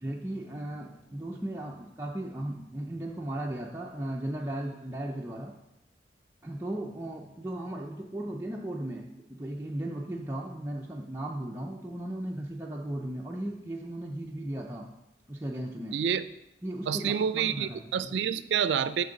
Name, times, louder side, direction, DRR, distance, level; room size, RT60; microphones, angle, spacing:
voice 1, 0.0-5.5 6.4-14.9 15.3-16.0 16.6-18.1, right 1 dB, 15° right, -1 dB, 0.4 m, -36 dB
voice 2, 15.9-16.2 16.9-19.0, right 8 dB, 80° right, 14 dB, 0.3 m, -28 dB
7.1 x 5.8 x 3.8 m, 0.88 s
head